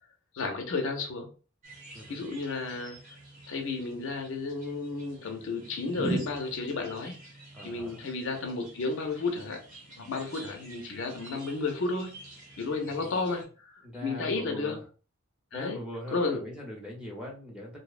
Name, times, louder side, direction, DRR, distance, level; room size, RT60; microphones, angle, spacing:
voice 1, 0.3-1.3 2.1-3.2 3.5-7.1 7.6-9.6 10.0-12.1 12.6-14.8 15.5-15.8 16.1-16.4, left 3 dB, 65° left, 3 dB, 0.5 m, -32 dB
sound 1, 1.6-13.5, right 1 dB, 40° right, 0.8 m, -43 dB
voice 2, 7.5-8.0 12.9-13.2 13.8-14.8 15.5-17.8, left 1 dB, 5° right, -2 dB, 0.6 m, -41 dB
2.6 x 2.0 x 2.3 m, 0.36 s
head